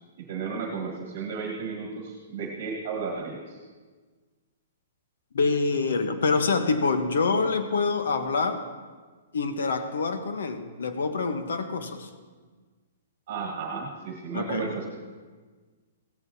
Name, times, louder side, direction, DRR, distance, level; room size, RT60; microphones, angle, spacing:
voice 1, 0.2-3.6 13.3-14.9, right 5 dB, 40° right, -1 dB, 1.5 m, -33 dB
voice 2, 5.3-8.6 9.3-12.1 14.3-14.7, left 4 dB, 85° left, 8 dB, 1.0 m, -26 dB
16.5 x 14.0 x 2.8 m, 1.4 s
hypercardioid pair, 175°, 0 cm